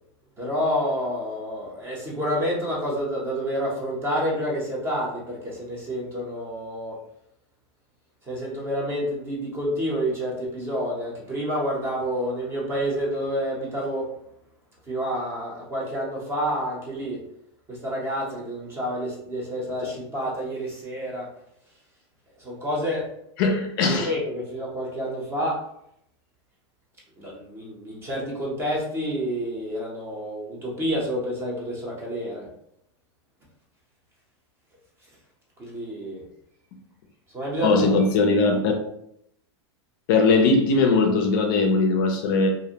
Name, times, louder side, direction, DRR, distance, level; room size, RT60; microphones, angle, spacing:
voice 1, 0.4-7.0 8.2-14.1 14.9-17.2 17.7-21.3 22.4-23.1 23.5-23.6 23.8-25.6 27.2-32.5 35.6-36.2 37.3-38.0, equal, 15° right, -3 dB, 0.6 m, -29 dB
voice 2, 23.4-24.1 37.6-38.7 40.1-42.5, left 3 dB, 50° left, 3 dB, 0.4 m, -20 dB
2.5 x 2.1 x 2.7 m, 0.75 s
supercardioid pair, 155°, 15 cm